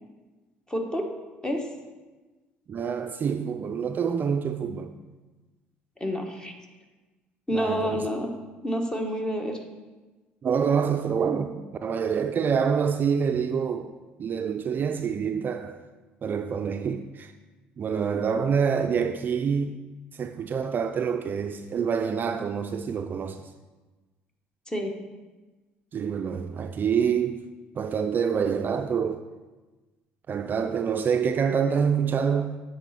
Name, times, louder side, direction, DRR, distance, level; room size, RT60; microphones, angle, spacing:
voice 1, 0.7-1.7 6.0-6.5 7.5-8.3 8.6-9.6 24.7-24.9, equal, 15° left, 1.2 m, -29 dB
voice 2, 2.7-4.9 7.5-8.1 10.4-13.9 14.2-15.8 16.2-17.3 17.8-19.8 20.1-23.4 25.9-27.4 27.7-29.2 30.3-32.6, right 6 dB, 45° right, 0.4 m, -26 dB
8.8 x 4.2 x 4.1 m
supercardioid pair, 70°, 5 cm